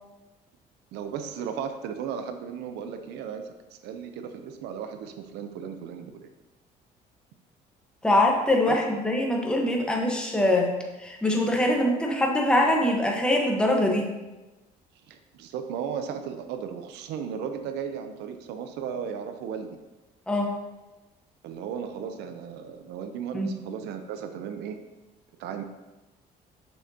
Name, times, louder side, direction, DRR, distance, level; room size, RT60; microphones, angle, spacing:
voice 1, 0.9-6.3 8.7-8.8 15.1-19.8 21.4-24.8 25.4-25.6, right 7 dB, 85° right, 7 dB, 0.6 m, -35 dB
voice 2, 8.0-10.7 11.0-14.1 20.3-20.5 23.3-23.5, left 1 dB, 5° left, 0 dB, 1.1 m, -23 dB
6.4 x 6.4 x 2.8 m, 1.1 s
cardioid pair, 110°, 17 cm